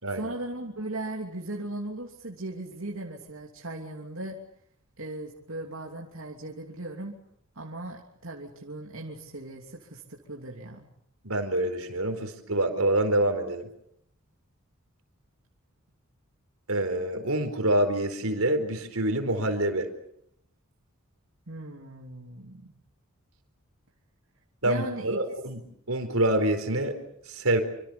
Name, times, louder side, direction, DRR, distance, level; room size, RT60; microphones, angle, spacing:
voice 1, 0.1-4.4 5.0-7.2 7.5-10.9 21.5-22.8 24.6-25.2, right 2 dB, 70° right, 0 dB, 3.0 m, -38 dB
voice 2, 11.2-13.7 16.7-19.9 24.6-25.6 25.9-27.0 27.3-27.6, right 1 dB, 90° right, 7 dB, 4.4 m, -26 dB
27.0 x 25.5 x 7.0 m, 0.71 s
head